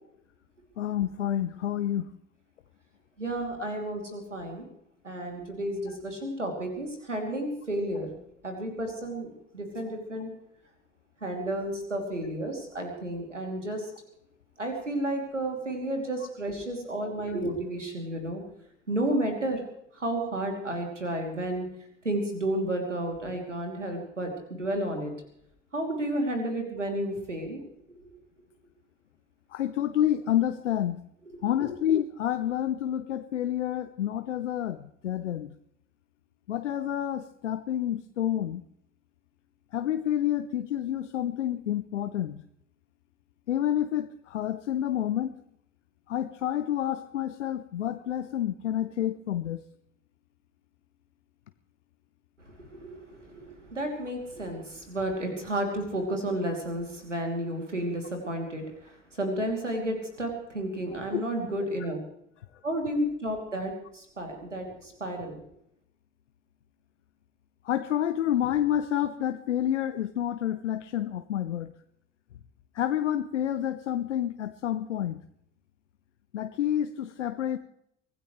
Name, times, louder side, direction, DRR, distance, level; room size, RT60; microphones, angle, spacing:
voice 1, 0.8-2.1 17.3-17.4 29.5-31.0 31.4-35.6 36.5-38.6 39.7-42.4 43.5-45.3 46.1-49.6 61.1-61.2 67.6-71.7 72.7-75.2 76.3-77.6, left 11 dB, 80° left, 10 dB, 0.7 m, -29 dB
voice 2, 3.2-4.6 5.0-8.2 8.4-9.3 9.5-10.3 11.2-13.9 14.6-18.4 18.9-19.6 19.9-21.6 22.0-25.1 25.7-27.6 27.9-28.1 31.3-31.7 52.4-62.0 62.6-65.5, right 1 dB, 90° right, 4 dB, 2.9 m, -32 dB
24.5 x 16.0 x 3.2 m, 0.74 s
figure-of-eight pair, 55°, 36 cm